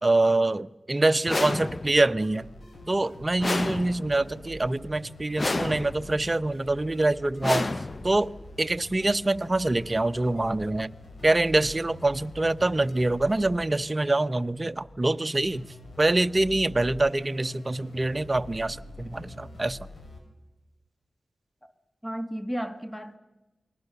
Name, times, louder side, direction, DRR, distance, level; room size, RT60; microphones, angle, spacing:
voice 1, 0.0-2.5 2.9-7.7 8.0-8.3 8.6-10.9 11.2-15.7 16.0-19.8, right 2 dB, 30° right, 0.8 m, -25 dB
sound 1, 1.3-2.1 3.4-4.3 5.4-6.2 7.4-8.3, left 2 dB, 40° left, 0.8 m, -30 dB
sound 2, 2.2-20.2, left 1 dB, 70° left, 6.5 m, -45 dB
voice 2, 22.0-23.2, equal, 15° left, 2.2 m, -33 dB
29.0 x 20.5 x 6.8 m
wide cardioid pair, 70°, 0 cm